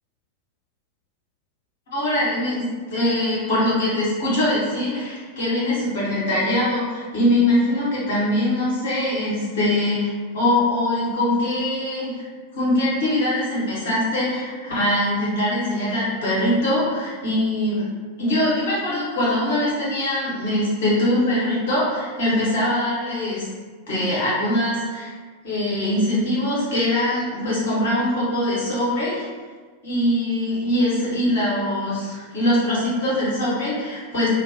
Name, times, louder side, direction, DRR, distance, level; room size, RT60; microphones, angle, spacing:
voice 1, 1.9-12.2 12.5-17.9 18.2-23.5 23.9-25.1 25.4-29.3 29.8-34.3, left 1 dB, 60° left, -7 dB, 1.0 m, -22 dB
2.2 x 2.2 x 2.4 m, 1.5 s
figure-of-eight pair, 90°, 0 cm